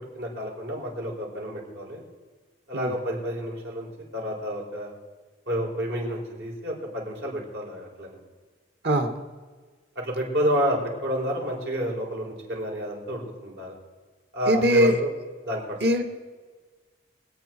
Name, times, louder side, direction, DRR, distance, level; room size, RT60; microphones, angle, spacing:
voice 1, 0.1-2.0 2.7-3.9 4.1-4.9 5.5-8.2 9.9-13.7 14.3-15.1 15.4-15.8, equal, 85° right, -2 dB, 4.8 m, -29 dB
voice 2, 14.5-15.0 15.8-16.0, right 1 dB, 65° right, 6 dB, 1.8 m, -21 dB
24.5 x 8.8 x 4.6 m, 1.4 s
head